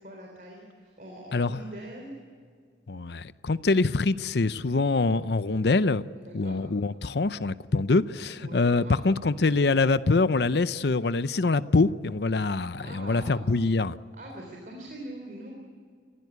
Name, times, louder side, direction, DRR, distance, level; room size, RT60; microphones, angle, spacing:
voice 1, 0.0-2.1 6.2-6.6 8.4-9.0 12.8-13.5 14.1-15.5, right 1 dB, 45° right, 3.8 m, -43 dB
voice 2, 2.9-6.0 6.3-14.0, left 3 dB, 70° left, 0.7 m, -24 dB
29.0 x 15.5 x 8.2 m
head